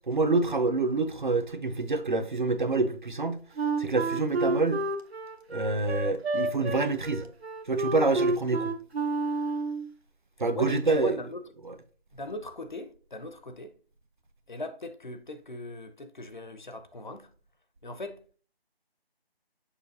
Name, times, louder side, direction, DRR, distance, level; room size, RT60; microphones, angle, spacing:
voice 1, 0.1-3.4 3.8-4.8 5.5-7.2 7.7-8.7 10.4-11.3 11.6-11.8, right 3 dB, 50° right, 0.6 m, -27 dB
Wind instrument woodwind instrument, 3.6-9.9, right 3 dB, 80° right, 1.0 m, -30 dB
voice 2, 10.5-11.4 12.1-13.7 14.5-17.3 17.8-18.2, left 2 dB, 50° left, 0.7 m, -39 dB
6.8 x 5.1 x 2.7 m
figure-of-eight pair, 180°, 31 cm